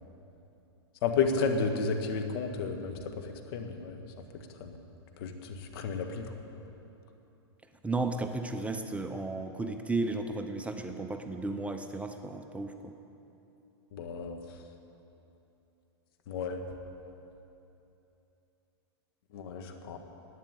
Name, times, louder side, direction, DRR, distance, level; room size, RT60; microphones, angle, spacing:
voice 1, 1.0-2.9 3.5-4.0 4.6-4.8 5.2-6.3 13.9-14.4 16.3-16.6 19.3-20.0, left 5 dB, 60° left, 5 dB, 1.5 m, -32 dB
voice 2, 7.8-13.0, right 2 dB, 10° right, 6 dB, 0.7 m, -34 dB
11.5 x 9.2 x 9.1 m, 2.9 s
hypercardioid pair, 120°, 14 cm